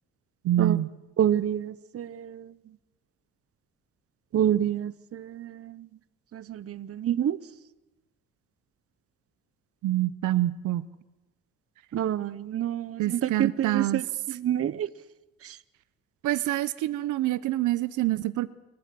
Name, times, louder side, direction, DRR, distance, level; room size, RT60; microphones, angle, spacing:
voice 1, 0.4-0.9 9.8-10.9 13.0-14.0 16.2-18.5, right 14 dB, 80° right, 0.8 m, -26 dB
voice 2, 1.2-2.5 4.3-5.9 6.3-7.4 11.9-14.0 14.3-14.9, right 10 dB, 50° right, 0.8 m, -28 dB
28.0 x 14.0 x 7.6 m
cardioid pair, 90°, 30 cm